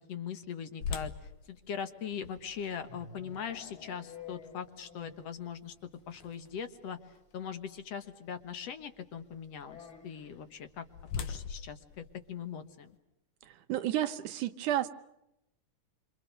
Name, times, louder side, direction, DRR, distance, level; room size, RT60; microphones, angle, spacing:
voice 1, 0.1-1.1 1.5-5.7 6.1-7.0 7.3-10.8 11.2-12.9, left 7 dB, 60° left, 9 dB, 2.3 m, -41 dB
sound 1, 0.8-6.8 7.3-7.4 8.0-8.2 10.3-13.0, left 6 dB, 75° left, 2.9 m, -43 dB
sound 2, 2.3-5.4 5.6-5.7 6.1-6.2 6.4-6.5 7.8-7.9 9.6-10.4, left 6 dB, 30° left, 4.2 m, -51 dB
voice 2, 13.4-14.9, right 12 dB, 90° right, 10 dB, 2.6 m, -32 dB
27.0 x 26.5 x 6.6 m, 0.85 s
omnidirectional pair, 3.5 m